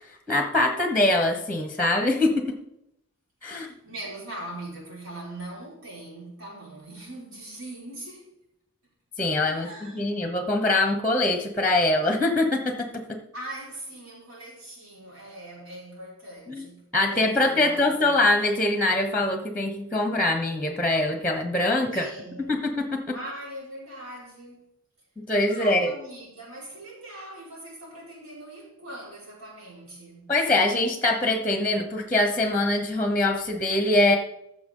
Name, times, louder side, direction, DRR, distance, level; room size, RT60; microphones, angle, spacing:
voice 1, 0.3-2.6 3.4-3.7 9.2-13.2 16.5-16.7 16.9-22.1 22.5-23.2 25.2-25.9 30.3-34.2, left 2 dB, 5° left, 1.0 m, -23 dB
voice 2, 3.5-8.3 9.2-10.3 13.3-18.2 21.9-22.5 23.1-24.6 25.5-30.3, right 1 dB, 90° right, 4.8 m, -41 dB
15.0 x 6.7 x 3.8 m
head